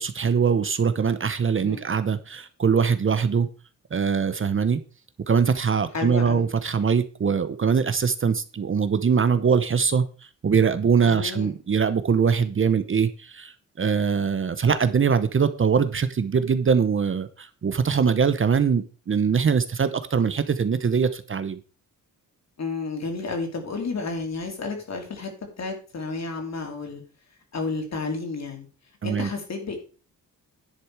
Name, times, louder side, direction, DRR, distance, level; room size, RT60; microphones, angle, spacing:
voice 1, 0.0-3.5 3.9-4.8 5.3-10.1 10.4-21.6 29.0-29.3, right 6 dB, 35° right, 12 dB, 0.8 m, -22 dB
voice 2, 5.9-6.5 11.0-11.5 22.6-25.3 25.6-27.0 27.5-28.7 29.0-29.8, left 3 dB, 50° left, 4 dB, 3.0 m, -31 dB
10.5 x 6.7 x 4.7 m, 0.36 s
wide cardioid pair, 135°, 34 cm